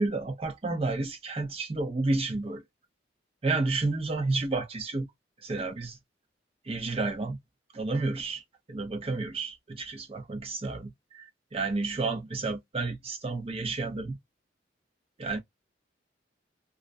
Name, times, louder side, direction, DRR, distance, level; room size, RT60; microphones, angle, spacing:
voice 1, 0.0-2.6 3.4-5.1 5.4-6.0 6.7-7.4 7.7-8.4 8.7-14.2 15.2-15.4, right 3 dB, 30° right, 0.6 m, -31 dB
2.4 x 2.0 x 2.5 m
head